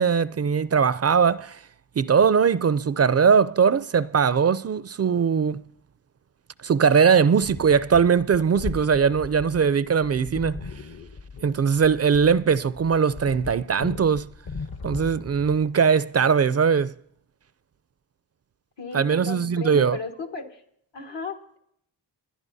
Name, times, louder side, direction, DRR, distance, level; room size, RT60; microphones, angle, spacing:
voice 1, 0.0-1.6 2.0-5.6 6.6-10.6 11.4-14.3 14.8-16.9 18.9-20.0, right 6 dB, 35° right, 0.4 m, -20 dB
sound 1, 7.4-15.7, left 4 dB, 55° left, 1.0 m, -38 dB
voice 2, 18.8-20.6 20.9-21.6, left 3 dB, 75° left, 1.7 m, -35 dB
28.5 x 10.5 x 2.7 m
cardioid pair, 60°, 43 cm